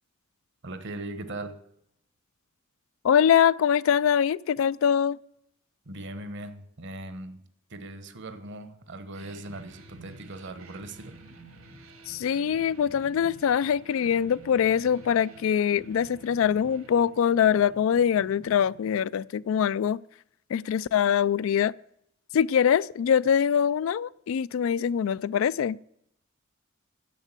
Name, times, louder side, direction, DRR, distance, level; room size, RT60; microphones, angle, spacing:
voice 1, 0.6-1.6 5.9-7.4 7.7-11.2, right 2 dB, 60° right, 1.1 m, -39 dB
voice 2, 3.0-5.2 12.1-20.0 20.5-21.7 22.3-25.8, left 8 dB, 70° left, 0.3 m, -23 dB
sound 1, 9.1-19.7, right 2 dB, 80° right, 1.8 m, -50 dB
10.5 x 7.3 x 7.4 m
head